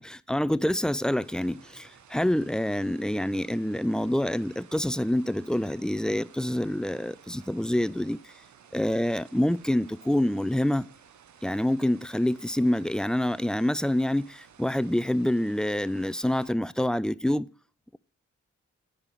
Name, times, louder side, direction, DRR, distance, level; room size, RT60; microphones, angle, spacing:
voice 1, 0.0-8.3 8.7-10.9 11.4-17.5, left 1 dB, ahead, 0.3 m, -27 dB
sound 1, 1.2-16.5, right 8 dB, 70° right, 1.0 m, -55 dB
9.8 x 5.4 x 6.5 m
supercardioid pair, 45°, 30 cm